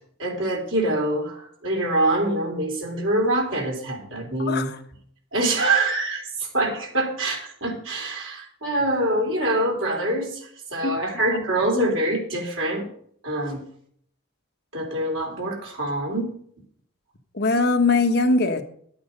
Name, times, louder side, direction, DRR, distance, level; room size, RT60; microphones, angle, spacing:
voice 1, 0.2-4.7 5.3-12.9 13.2-13.6 14.7-16.3, right 1 dB, 80° right, 0 dB, 3.6 m, -25 dB
voice 2, 4.4-4.8 10.8-10.9 17.3-18.6, left 3 dB, 55° left, 5 dB, 1.3 m, -21 dB
11.5 x 8.7 x 5.3 m, 0.63 s
head